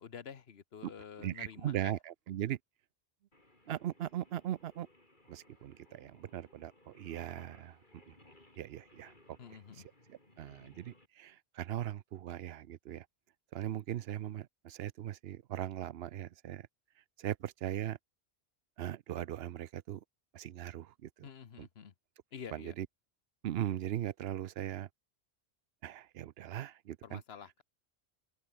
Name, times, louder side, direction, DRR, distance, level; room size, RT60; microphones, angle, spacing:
voice 1, 0.0-2.0 9.4-9.9 21.2-21.9 22.3-22.7 27.0-27.6, left 7 dB, 70° left, 1.3 m, -49 dB
voice 2, 1.2-2.6 3.7-4.9 5.3-8.2 8.6-9.4 10.4-13.1 13.5-16.7 17.2-18.0 18.8-20.0 20.3-21.1 21.6-21.7 22.5-22.9 23.4-24.9 25.8-27.2, right 11 dB, 70° right, 0.8 m, -39 dB
Singing, 3.3-11.1, left 1 dB, 45° left, 5.2 m, -63 dB
omnidirectional pair, 1.1 m